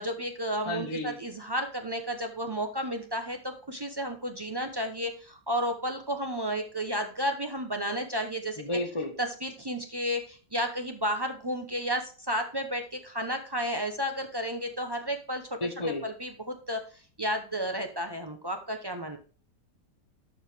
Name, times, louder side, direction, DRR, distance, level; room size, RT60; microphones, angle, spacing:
voice 1, 0.0-8.8 9.2-15.6 16.0-16.8 17.2-19.2, equal, 35° right, 4 dB, 0.4 m, -32 dB
voice 2, 0.7-1.2 8.6-9.1 15.6-16.0, left 1 dB, 25° left, 3 dB, 0.7 m, -31 dB
12.0 x 4.8 x 3.4 m, 0.37 s
omnidirectional pair, 1.9 m